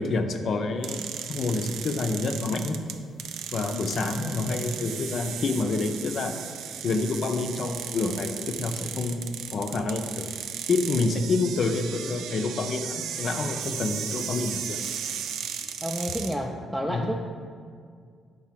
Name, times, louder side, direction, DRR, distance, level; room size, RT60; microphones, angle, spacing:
voice 1, 0.0-2.8 3.5-6.4 6.8-10.3 10.7-14.8 16.9-17.1, left 3 dB, 55° left, 6 dB, 0.5 m, -28 dB
sound 1, 0.8-16.4, right 8 dB, 80° right, 0.3 m, -36 dB
voice 2, 15.8-17.3, equal, ahead, -1 dB, 0.4 m, -30 dB
4.8 x 4.1 x 5.8 m, 2.1 s
cardioid pair, 90°, 0 cm